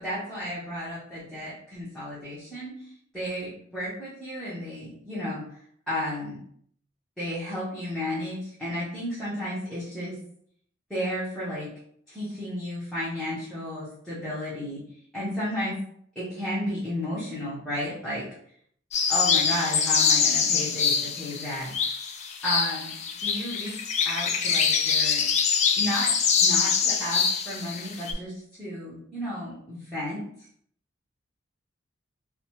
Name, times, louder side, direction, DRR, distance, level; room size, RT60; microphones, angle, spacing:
voice 1, 0.0-2.8 3.1-5.4 5.9-6.4 7.2-10.2 10.9-11.7 12.1-14.8 15.1-15.8 16.2-18.3 19.1-21.7 22.4-22.9 23.2-25.3 25.8-26.1 26.4-30.2, equal, 5° left, -11 dB, 0.8 m, -33 dB
sound 1, 18.9-28.1, left 6 dB, 35° left, 0.3 m, -24 dB
3.1 x 2.1 x 2.9 m, 0.65 s
head